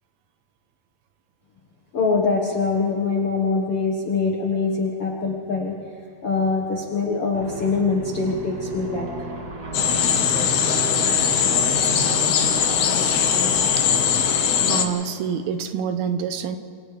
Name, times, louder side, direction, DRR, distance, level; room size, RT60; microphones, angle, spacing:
voice 1, 1.9-5.7 6.2-9.1, left 4 dB, 50° left, -2 dB, 1.8 m, -23 dB
Aircraft, 7.3-14.7, right 2 dB, 35° right, 1.6 m, -34 dB
sound 1, 9.7-14.9, left 8 dB, 85° left, 3.3 m, -20 dB
voice 2, 14.7-16.6, right 7 dB, 75° right, 9 dB, 2.7 m, -26 dB
28.0 x 27.0 x 3.4 m, 2.5 s
omnidirectional pair, 4.6 m